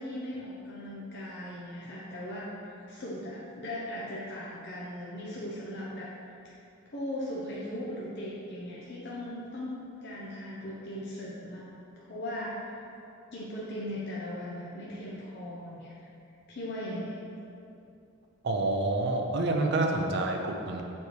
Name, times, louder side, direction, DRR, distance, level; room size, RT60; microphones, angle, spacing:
voice 1, 0.0-6.1 6.5-6.6 6.9-11.6 12.1-12.7 13.3-15.9 16.5-17.1, left 1 dB, 50° left, -7 dB, 0.7 m, -38 dB
voice 2, 18.4-20.8, right 2 dB, 50° right, 2 dB, 0.5 m, -28 dB
7.0 x 4.6 x 3.2 m, 2.7 s
head